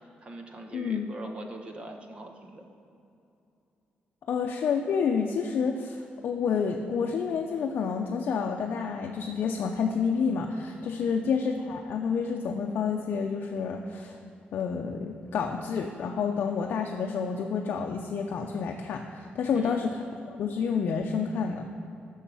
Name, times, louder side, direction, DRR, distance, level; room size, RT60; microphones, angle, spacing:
voice 1, 0.2-2.7 11.0-11.3 19.5-19.9, right 2 dB, 30° right, 4 dB, 1.1 m, -42 dB
voice 2, 0.7-1.1 4.3-14.1 14.5-20.0 20.3-21.7, left 6 dB, 60° left, 2 dB, 0.6 m, -29 dB
11.0 x 6.4 x 7.0 m, 2.7 s
wide cardioid pair, 160°, 4 cm